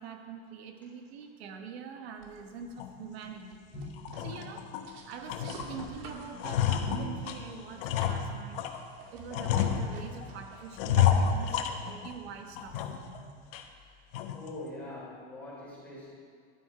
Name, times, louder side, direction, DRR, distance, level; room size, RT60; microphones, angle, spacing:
voice 1, 0.0-3.6 4.2-4.7 5.1-8.6 9.1-12.8, right 6 dB, 85° right, 4 dB, 1.4 m, -44 dB
sound 1, 2.2-13.3, right 3 dB, 65° right, 2.3 m, -49 dB
sound 2, 2.8-2.9 3.4-3.5 4.0-4.9 5.3-5.9 6.2-8.8 9.3-10.3 10.8-12.2 12.6-13.2 13.5-13.6 14.1-14.5, left 8 dB, 60° left, 1.1 m, -30 dB
voice 2, 3.7-4.3 14.3-16.1, left 2 dB, 5° left, -8 dB, 4.0 m, -43 dB
12.0 x 11.5 x 5.0 m, 2.1 s
supercardioid pair, 175°, 31 cm